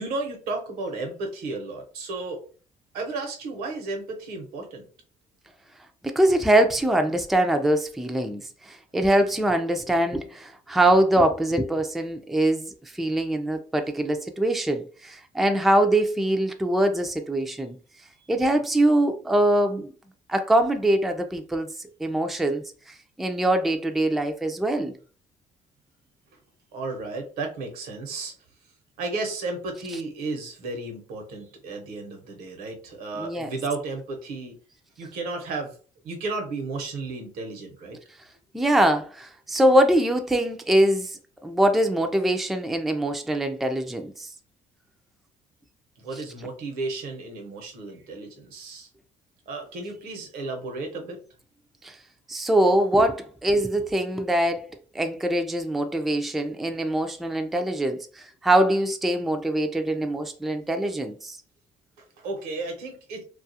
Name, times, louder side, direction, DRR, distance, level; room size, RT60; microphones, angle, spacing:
voice 1, 0.0-2.4 2.9-4.9 26.7-28.3 29.0-34.6 35.0-35.8 36.0-38.0 46.0-48.9 49.5-51.2 62.0-63.2, right 3 dB, 80° right, 0.8 m, -33 dB
voice 2, 6.0-17.8 18.3-19.9 20.3-21.7 22.0-24.9 33.2-33.5 38.5-44.3 51.8-52.0 52.3-54.7 54.9-61.4, right 1 dB, ahead, 0.3 m, -23 dB
2.4 x 2.3 x 2.7 m
cardioid pair, 90°, 15 cm